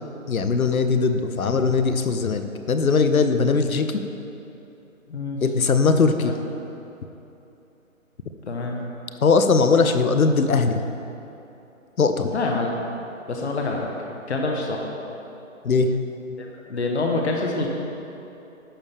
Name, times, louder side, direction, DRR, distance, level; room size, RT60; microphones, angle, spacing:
voice 1, 0.3-4.0 5.4-6.3 9.2-10.8 12.0-12.3 15.6-15.9, left 4 dB, 90° left, 8 dB, 0.8 m, -20 dB
voice 2, 5.1-5.4 6.2-6.3 8.5-8.8 12.3-12.7 13.3-13.9 14.3-14.9 16.3-17.7, left 3 dB, 50° left, 0 dB, 1.2 m, -26 dB
11.5 x 6.6 x 3.6 m, 2.9 s
figure-of-eight pair, 165°, 41 cm